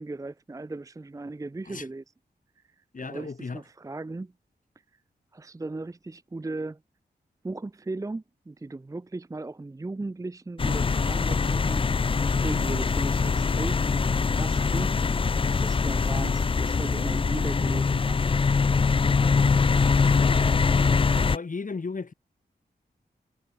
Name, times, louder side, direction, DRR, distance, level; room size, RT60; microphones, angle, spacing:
voice 1, 0.0-2.0 2.8-4.3 5.3-6.8 7.4-11.9 12.2-13.8 14.4-15.0 15.4-18.2, right 2 dB, 20° right, 0.6 m, -37 dB
voice 2, 2.9-3.6 20.0-20.6 21.3-22.1, left 4 dB, 50° left, 3.3 m, -36 dB
sound 1, 10.6-21.4, left 5 dB, 30° left, 0.4 m, -23 dB
wide cardioid pair, 90°, 17 cm